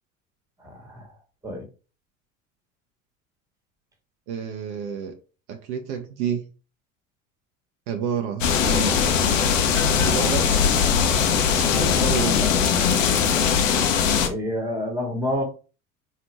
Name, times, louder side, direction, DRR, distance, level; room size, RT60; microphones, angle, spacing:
voice 1, 0.6-1.1 1.4-1.6 14.2-15.4, left 1 dB, 10° right, 2 dB, 1.3 m, -28 dB
voice 2, 4.3-5.1 5.5-6.4 7.9-9.1 9.9-10.6 11.8-12.5, right 7 dB, 60° right, 5 dB, 0.7 m, -29 dB
sound 1, 8.4-14.3, left 7 dB, 70° left, 0.8 m, -20 dB
4.1 x 2.8 x 3.0 m, 0.36 s
figure-of-eight pair, 70°, 40 cm